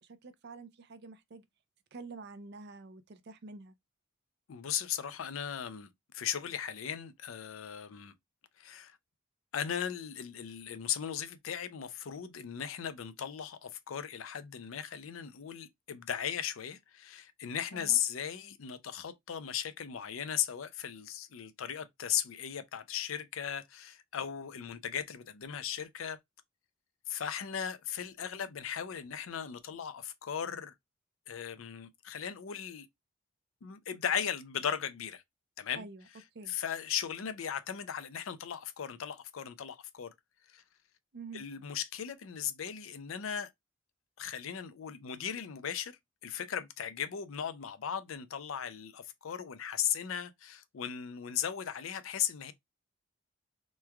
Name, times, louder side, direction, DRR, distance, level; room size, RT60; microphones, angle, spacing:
voice 1, 0.0-1.4 1.9-3.7 17.7-18.0 35.7-36.0 36.3-36.5 41.1-41.4, right 3 dB, 55° right, 0.5 m, -47 dB
voice 2, 4.5-8.1 8.6-9.0 9.5-26.2 27.1-30.7 31.3-32.9 33.6-35.2 35.6-35.9 36.5-40.1 40.5-40.6 41.3-43.5 44.2-52.5, left 9 dB, 90° left, 0.5 m, -37 dB
3.1 x 2.2 x 3.3 m
head